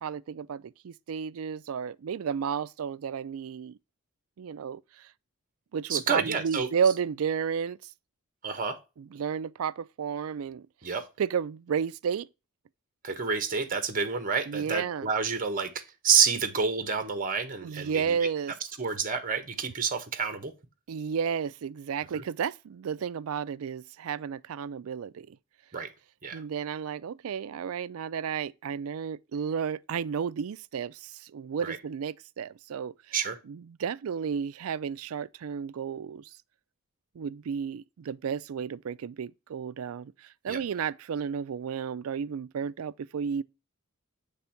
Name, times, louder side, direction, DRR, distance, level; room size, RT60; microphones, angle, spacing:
voice 1, 0.0-3.8 4.4-5.1 5.7-7.8 9.0-10.7 11.2-12.3 14.5-15.1 17.6-18.5 20.9-25.4 26.3-33.2 33.4-36.3 37.2-43.4, right 7 dB, 80° right, 0.4 m, -32 dB
voice 2, 5.9-6.7 8.4-8.8 10.8-11.0 13.0-18.0 18.8-20.5 22.1-22.2 25.7-25.9 26.2-26.4 31.6-31.8 33.1-33.4 40.5-40.6, right 6 dB, 40° right, 1.1 m, -28 dB
8.2 x 3.5 x 5.8 m
head